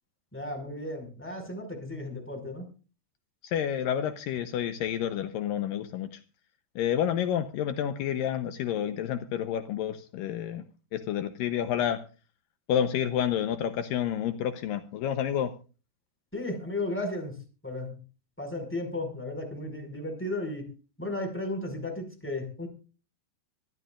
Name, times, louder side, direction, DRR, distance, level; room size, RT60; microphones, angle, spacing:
voice 1, 0.3-2.7 16.3-17.3 17.6-18.0 18.4-20.7 21.0-22.7, left 1 dB, 5° left, 4 dB, 4.9 m, -34 dB
voice 2, 3.4-6.2 6.8-10.6 10.9-12.0 12.7-15.5, left 10 dB, 85° left, 9 dB, 2.0 m, -29 dB
24.0 x 12.5 x 2.5 m, 0.35 s
omnidirectional pair, 5.1 m